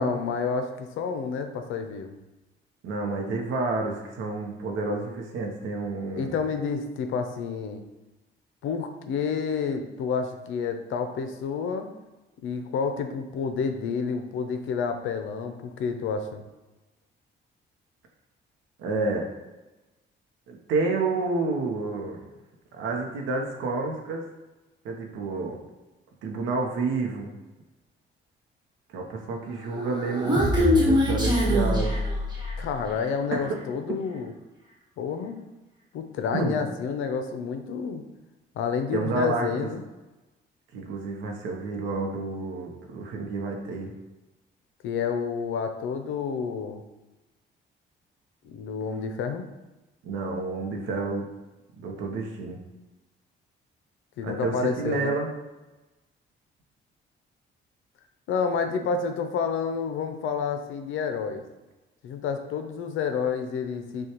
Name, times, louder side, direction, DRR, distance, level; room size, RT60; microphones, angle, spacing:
voice 1, 0.0-2.1 6.2-7.8 8.6-11.9 12.4-16.4 32.6-34.3 35.0-35.4 35.9-38.0 38.6-39.8 44.8-46.8 48.4-49.5 54.2-55.1 58.3-61.4 62.0-64.1, left 5 dB, 80° left, 7 dB, 0.5 m, -29 dB
voice 2, 2.8-6.4 18.8-19.3 20.5-22.2 22.7-24.2 24.8-25.6 26.2-27.4 28.9-32.0 33.3-33.6 36.3-36.6 38.9-39.5 40.7-43.9 50.0-51.3 51.7-52.6 54.2-55.3, right 3 dB, 85° right, 1 dB, 0.7 m, -29 dB
Human voice, 29.7-32.7, left 1 dB, 20° right, 1.2 m, -23 dB
6.3 x 2.3 x 2.9 m, 1.1 s
cardioid pair, 90°, 20 cm